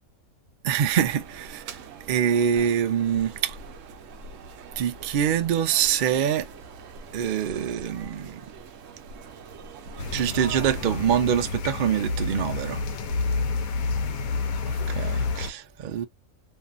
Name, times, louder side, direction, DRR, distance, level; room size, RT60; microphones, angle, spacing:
voice 1, 0.6-1.8 2.1-3.6 4.8-6.5 7.1-8.4 10.1-12.8 14.9-16.0, right 9 dB, 85° right, 0.4 m, -25 dB
sound 1, 0.9-11.2, right 4 dB, 70° right, 1.0 m, -43 dB
sound 2, 10.0-15.5, left 3 dB, 80° left, 1.0 m, -29 dB
2.6 x 2.6 x 2.3 m
omnidirectional pair, 1.5 m